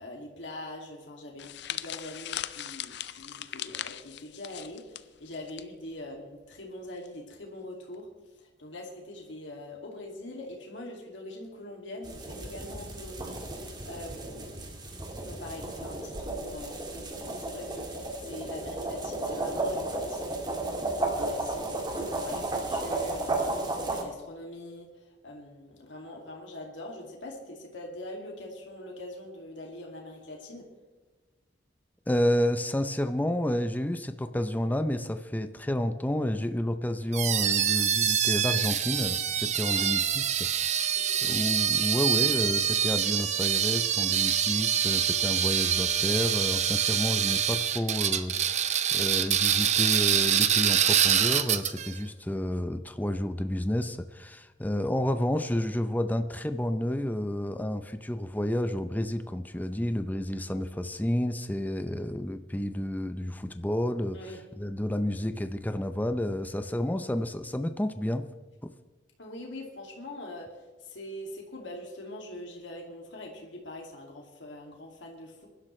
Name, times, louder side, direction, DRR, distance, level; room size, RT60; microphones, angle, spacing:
voice 1, 0.0-14.6 15.2-30.7 39.6-39.9 41.0-41.3 64.1-64.4 69.2-75.5, left 1 dB, 85° left, 0 dB, 2.4 m, -43 dB
sound 1, 1.4-5.6 5.9-6.2 7.0-7.3, left 11 dB, 65° left, 0.5 m, -39 dB
sound 2, 12.0-24.0, right 2 dB, 25° right, 1.8 m, -33 dB
voice 2, 32.1-40.4 41.2-64.2 64.6-68.3 68.6-68.7, left 1 dB, 10° left, 9 dB, 0.6 m, -30 dB
sound 3, 37.1-51.9, right 9 dB, 40° right, 0.6 m, -25 dB
22.5 x 12.0 x 3.2 m, 1.2 s
head